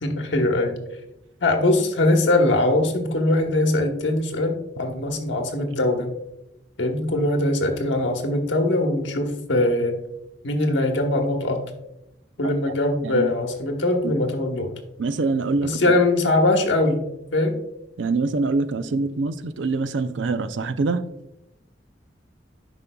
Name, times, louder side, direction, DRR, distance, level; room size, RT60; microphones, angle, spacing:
voice 1, 0.0-0.7 1.4-6.2 6.8-9.9 10.4-11.6 12.4-14.7 15.6-17.0 17.3-17.6, left 2 dB, 80° left, 4 dB, 1.1 m, -21 dB
voice 2, 15.0-15.8 18.0-21.1, right 3 dB, 80° right, 12 dB, 0.5 m, -24 dB
10.5 x 5.2 x 2.3 m, 0.87 s
head